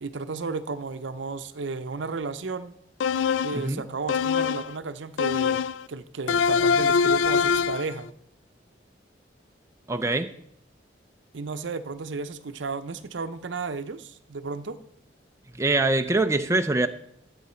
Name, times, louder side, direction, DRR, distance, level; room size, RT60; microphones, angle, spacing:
voice 1, 0.0-2.7 3.4-5.6 5.9-8.1 11.3-14.8, right 4 dB, 75° right, 0.6 m, -33 dB
sound 1, 3.0-3.7 4.1-4.7 5.2-5.8 6.3-7.9, left 6 dB, 85° left, 0.3 m, -23 dB
voice 2, 9.9-10.3 15.5-16.9, right 2 dB, 15° right, 0.4 m, -23 dB
13.0 x 8.3 x 4.3 m
head